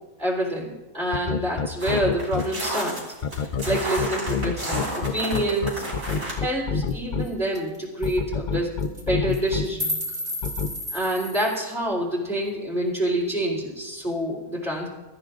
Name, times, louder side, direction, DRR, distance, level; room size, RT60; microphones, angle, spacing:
voice 1, 0.2-3.0 3.4-5.9 6.4-10.0 10.9-14.9, right 1 dB, 5° left, -8 dB, 3.4 m, -27 dB
sound 1, 1.1-2.4 3.2-7.2 8.0-9.6 10.4-10.7, left 5 dB, 45° left, 0.7 m, -26 dB
sound 2, 1.8-6.3, right 1 dB, 85° right, 4.7 m, -31 dB
sound 3, 6.9-7.0 7.2-7.3 7.5-7.8 8.0-8.2 8.8-9.0 9.3-11.6, left 1 dB, 40° right, 3.7 m, -32 dB
24.0 x 13.5 x 2.5 m, 1.1 s
omnidirectional pair, 1.4 m